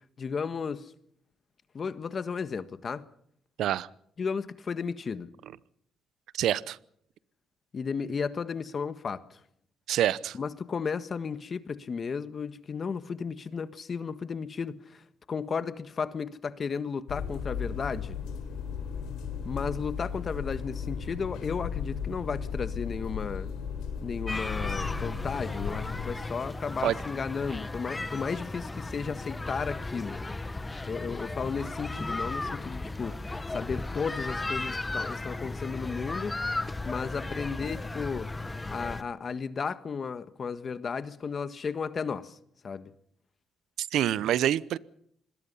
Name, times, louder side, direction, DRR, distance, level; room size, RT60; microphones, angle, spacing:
voice 1, 0.2-0.9 1.7-3.0 4.2-5.3 7.7-9.4 10.3-18.2 19.4-23.5 24.0-30.2 30.9-36.3 36.8-38.3 38.7-42.4 42.6-42.9, left 5 dB, 45° left, 1.5 m, -34 dB
voice 2, 6.3-6.8 9.9-10.4 26.8-26.9 43.8-44.8, right 11 dB, 80° right, 0.8 m, -26 dB
sound 1, 17.1-26.1, left 6 dB, 90° left, 4.3 m, -35 dB
sound 2, 24.3-39.0, left 2 dB, 20° left, 1.4 m, -35 dB
26.5 x 21.0 x 5.6 m
cardioid pair, 90°, 0 cm